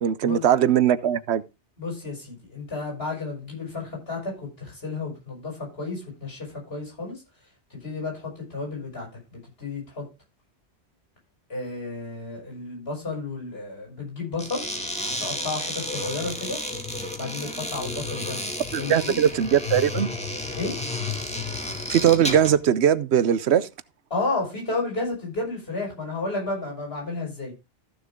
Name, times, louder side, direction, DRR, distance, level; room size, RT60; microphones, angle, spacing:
voice 1, 0.0-1.4 18.7-20.1 21.9-23.7, right 9 dB, 85° right, 1.0 m, -20 dB
voice 2, 1.8-7.2 7.7-10.0 11.5-14.6 15.2-16.6 17.2-19.2 20.6-20.8 24.1-27.5, left 3 dB, 65° left, 7.1 m, -32 dB
sound 1, 14.3-22.6, left 2 dB, 5° left, 2.2 m, -32 dB
14.5 x 6.8 x 3.6 m
omnidirectional pair, 1.1 m